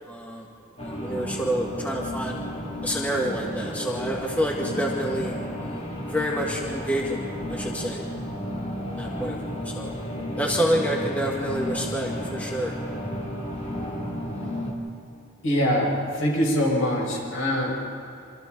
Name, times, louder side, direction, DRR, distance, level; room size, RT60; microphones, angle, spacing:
voice 1, 0.1-0.4 0.8-2.4 2.8-7.2 7.5-8.0 8.9-9.4 9.6-9.9 10.4-12.7, equal, 5° left, -2 dB, 2.0 m, -28 dB
sound 1, 0.8-14.7, equal, 30° left, 2.8 m, -33 dB
voice 2, 15.4-17.9, equal, 75° left, -2 dB, 6.1 m, -24 dB
28.5 x 26.0 x 4.0 m, 2.5 s
head